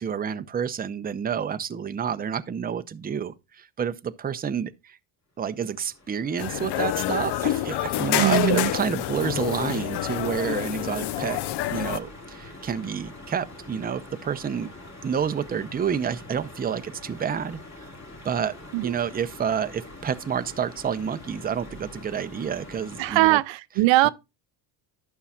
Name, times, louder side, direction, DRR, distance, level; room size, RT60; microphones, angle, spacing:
voice 1, 0.0-5.0 5.4-11.4 11.7-14.7 15.0-17.9 18.2-18.6 18.8-23.4 24.0-24.1, right 7 dB, 20° right, 0.6 m, -29 dB
sound 1, 5.4-23.3, left 2 dB, 35° left, 2.9 m, -45 dB
sound 2, 6.4-12.0, left 13 dB, 55° left, 0.6 m, -27 dB
voice 2, 8.2-8.7 18.7-18.9 23.0-24.1, right 19 dB, 70° right, 0.5 m, -21 dB
11.5 x 5.6 x 2.3 m
cardioid pair, 95°, 47 cm